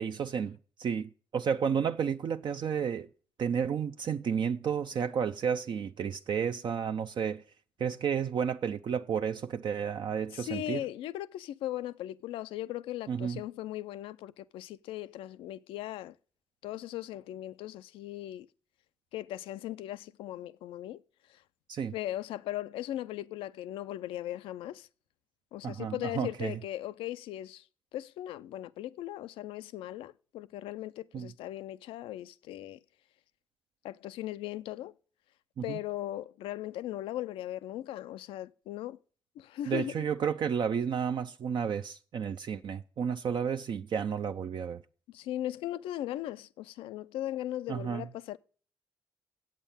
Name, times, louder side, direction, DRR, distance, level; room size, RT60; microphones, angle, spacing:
voice 1, 0.0-3.1 3.4-7.4 7.8-10.8 13.1-13.4 21.7-21.9 25.6-26.6 31.1-31.3 35.6-35.8 39.7-44.8 47.7-48.1, right 7 dB, 60° right, 0.5 m, -32 dB
voice 2, 10.3-16.1 16.6-18.5 19.1-21.0 21.9-24.9 25.5-27.6 27.9-32.8 33.8-34.9 35.6-39.0 39.4-40.1 45.1-48.4, left 13 dB, 90° left, 0.4 m, -38 dB
8.1 x 7.4 x 8.7 m
supercardioid pair, 60°, 9 cm